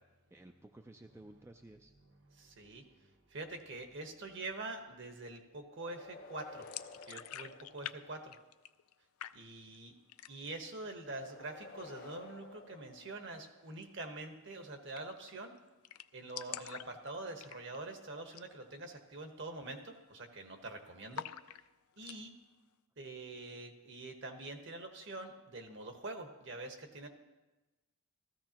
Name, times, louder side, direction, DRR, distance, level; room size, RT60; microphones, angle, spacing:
voice 1, 0.3-1.9, right 1 dB, 10° right, 5 dB, 0.3 m, -54 dB
voice 2, 2.3-6.7 7.1-8.3 9.3-9.9 10.3-15.6 16.1-21.3 22.0-22.3 23.0-27.1, right 2 dB, 55° right, 4 dB, 1.3 m, -45 dB
sound 1, 5.7-8.4 11.0-13.7, left 3 dB, 40° left, 0.7 m, -53 dB
sound 2, 6.6-8.0 8.2-8.9 9.2-9.8 10.1-10.6 11.0-11.1 11.4-12.0 13.7-13.9 14.2-14.3 14.5-14.6 15.0-15.3 15.6-15.7 15.8-17.9 18.3-18.5 18.9-19.0 19.5-19.8 20.0-20.7 21.1-22.2, left 11 dB, 85° left, 0.4 m, -46 dB
15.5 x 14.0 x 2.9 m, 1.1 s
head